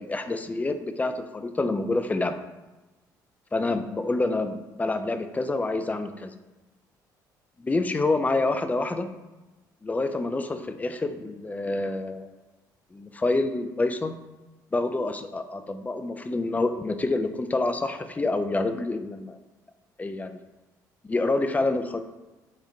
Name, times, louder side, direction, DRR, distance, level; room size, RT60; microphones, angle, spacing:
voice 1, 0.0-2.4 3.5-6.3 7.7-9.1 9.8-12.4 12.9-14.2 14.7-19.4 20.0-20.4 21.1-22.0, left 2 dB, 15° left, 9 dB, 0.3 m, -27 dB
3.6 x 2.6 x 3.6 m, 1.1 s
figure-of-eight pair, 50°, 10 cm